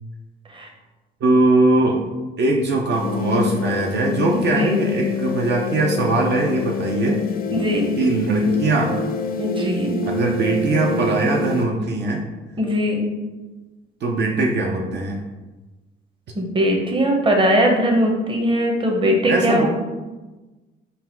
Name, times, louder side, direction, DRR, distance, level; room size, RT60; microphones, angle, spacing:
voice 1, 1.2-2.0 2.4-7.2 8.0-9.0 10.1-12.2 14.0-15.2 19.3-19.7, right 2 dB, 60° right, 0 dB, 0.5 m, -20 dB
sound 1, 2.9-11.6, left 4 dB, 45° left, 0.4 m, -27 dB
voice 2, 4.3-4.9 7.5-7.8 9.4-10.0 12.6-13.0 16.4-19.7, equal, 25° right, 1 dB, 0.8 m, -20 dB
3.9 x 2.2 x 4.3 m, 1.2 s
cardioid pair, 90°, 20 cm